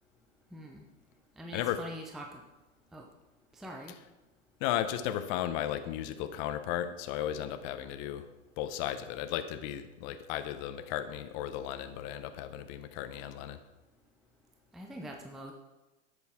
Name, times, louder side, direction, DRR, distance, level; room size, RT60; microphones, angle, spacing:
voice 1, 0.5-0.8 1.4-2.4 2.9-3.1 3.5-3.9 14.7-15.5, equal, ahead, 1 dB, 0.6 m, -44 dB
voice 2, 4.6-8.3 8.6-13.6, left 11 dB, 35° left, 9 dB, 0.8 m, -35 dB
10.5 x 8.2 x 3.6 m, 1.1 s
hypercardioid pair, 125°, 39 cm